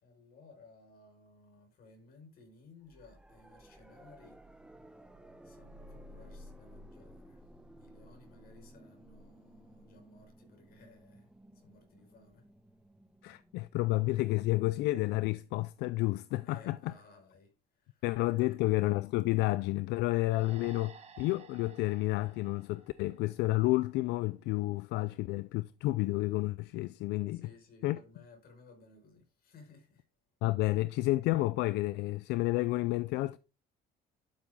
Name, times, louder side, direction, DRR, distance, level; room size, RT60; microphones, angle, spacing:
voice 1, 0.0-4.4 5.4-7.4 7.8-11.3 11.6-12.4 16.4-17.5 17.8-18.0 18.4-18.6 27.3-30.0, left 3 dB, 65° left, 4.9 m, -58 dB
sound 1, 2.9-15.7 18.1-18.2, equal, 5° right, 1.3 m, -56 dB
voice 2, 13.2-16.9 18.0-27.5 27.8-28.0 30.4-33.4, left 19 dB, 85° left, 0.4 m, -30 dB
sound 2, 20.3-23.8, right 5 dB, 40° right, 1.7 m, -55 dB
12.0 x 7.3 x 3.6 m
cardioid pair, 110°, 17 cm